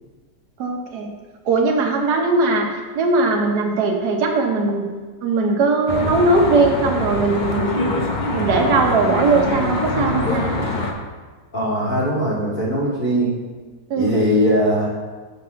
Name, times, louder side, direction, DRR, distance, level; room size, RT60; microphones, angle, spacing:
voice 1, 0.6-1.1 1.4-2.7 2.9-4.8 5.2-7.7 8.3-10.5 13.9-14.3, right 3 dB, 65° right, 1 dB, 1.5 m, -19 dB
Traffic noise roadway noise, 5.9-10.9, left 2 dB, 60° left, 0.4 m, -24 dB
voice 2, 11.5-13.4 14.0-14.9, equal, 25° left, -7 dB, 2.1 m, -20 dB
5.9 x 5.4 x 6.7 m, 1.3 s
omnidirectional pair, 2.0 m